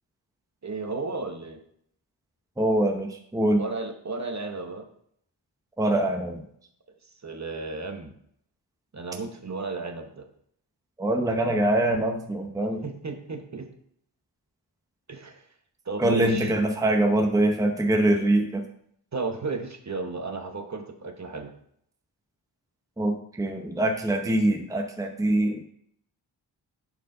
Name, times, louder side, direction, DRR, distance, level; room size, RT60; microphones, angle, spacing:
voice 1, 0.6-1.6 3.6-4.8 7.2-8.1 8.9-10.3 12.8-13.7 15.1-15.4 15.9-16.5 19.1-21.5, right 3 dB, 35° right, 5 dB, 1.0 m, -33 dB
voice 2, 2.6-3.6 5.8-6.4 11.0-12.8 16.0-18.6 23.0-25.7, right 1 dB, 10° right, 3 dB, 0.8 m, -24 dB
10.5 x 4.7 x 3.8 m, 0.68 s
wide cardioid pair, 90°, 45 cm